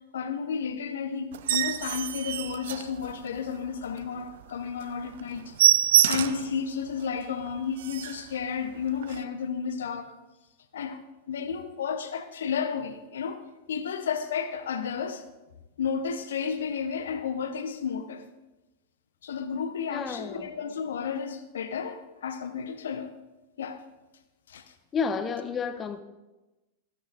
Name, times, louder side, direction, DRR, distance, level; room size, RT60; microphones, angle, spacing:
voice 1, 0.1-5.5 6.0-10.2 10.7-11.0 11.3-13.4 13.7-15.3 15.8-18.2 19.2-23.1 23.6-23.8 24.5-24.7, left 6 dB, 65° left, 0.8 m, -32 dB
sound 1, 1.3-3.5 3.9-4.0 4.4-4.5 4.8-4.9 5.2-6.5 7.0-7.1 7.5-7.6 7.8-8.3 9.0-9.2, right 11 dB, 60° right, 0.4 m, -25 dB
voice 2, 19.9-20.5 24.9-26.0, left 5 dB, 25° left, 0.8 m, -31 dB
13.5 x 13.0 x 2.5 m
figure-of-eight pair, 90°, 0 cm